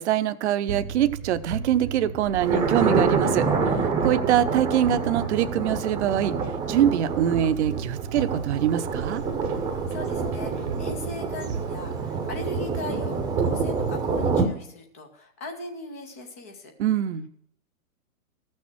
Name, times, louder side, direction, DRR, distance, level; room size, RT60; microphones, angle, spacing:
voice 1, 0.0-6.4 6.7-9.2 16.8-17.3, right 10 dB, 50° right, 12 dB, 0.7 m, -24 dB
sound 1, 0.7-14.0, right 6 dB, 70° right, 1.1 m, -36 dB
Thunder, 2.4-14.5, right 4 dB, 10° right, 0.8 m, -27 dB
voice 2, 9.7-16.7, left 2 dB, 10° left, 4 dB, 0.4 m, -39 dB
14.0 x 6.4 x 6.1 m, 0.70 s
hypercardioid pair, 130°, 46 cm